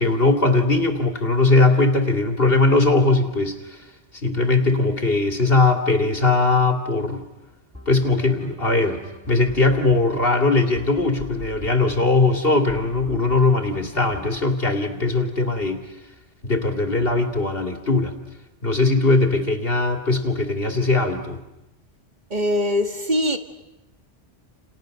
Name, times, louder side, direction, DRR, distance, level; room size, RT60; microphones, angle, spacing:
voice 1, 0.0-3.8 4.2-7.2 7.9-9.0 9.3-15.8 16.4-18.1 18.6-21.4, left 3 dB, 55° left, 2.7 m, -20 dB
sound 1, 7.7-14.5, left 1 dB, 10° right, 5.4 m, -43 dB
voice 2, 22.3-23.4, left 1 dB, 40° right, 1.8 m, -22 dB
29.5 x 29.0 x 6.5 m
omnidirectional pair, 1.1 m